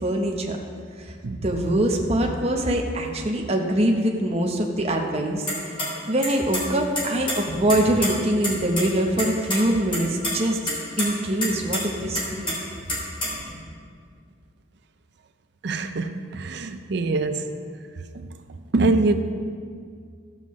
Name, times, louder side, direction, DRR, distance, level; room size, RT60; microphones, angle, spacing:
voice 1, 0.0-0.6 1.0-5.5 6.1-10.6 11.0-12.5, right 1 dB, 30° right, 2 dB, 0.8 m, -23 dB
sound 1, 5.5-5.9 6.2-6.6 7.0-8.1 8.4-8.5 8.8-8.9 9.2-9.6 9.9-10.3 10.7-11.1 11.4-11.8 12.1-13.5, left 1 dB, 25° left, 2.2 m, -26 dB
voice 2, 15.6-17.6 18.1-19.2, right 3 dB, 60° right, 9 dB, 0.5 m, -24 dB
13.0 x 7.5 x 3.1 m, 2.1 s
head